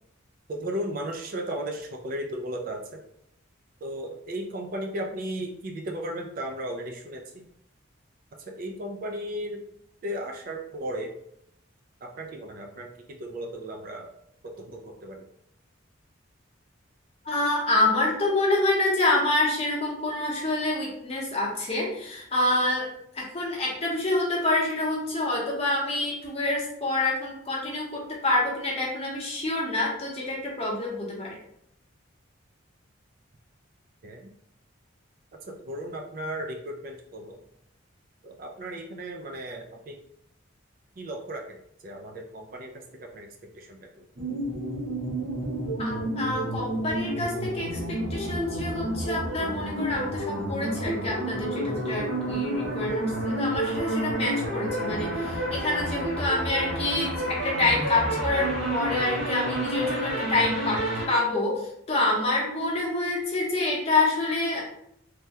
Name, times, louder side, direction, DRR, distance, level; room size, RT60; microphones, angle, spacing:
voice 1, 0.5-3.0 3.8-7.4 8.4-9.6 10.0-11.1 12.0-14.1 14.4-15.2 34.0-34.3 35.5-37.4 38.2-40.0 41.0-41.6 41.8-43.3 43.5-43.9, right 1 dB, 45° right, 1 dB, 0.3 m, -35 dB
voice 2, 17.2-22.9 23.1-31.3 45.8-60.8 61.1-61.6 61.9-64.6, left 2 dB, 30° left, -4 dB, 0.8 m, -27 dB
sound 1, 44.2-61.1, right 1 dB, 70° right, 1.0 m, -30 dB
3.3 x 2.1 x 2.8 m, 0.73 s
head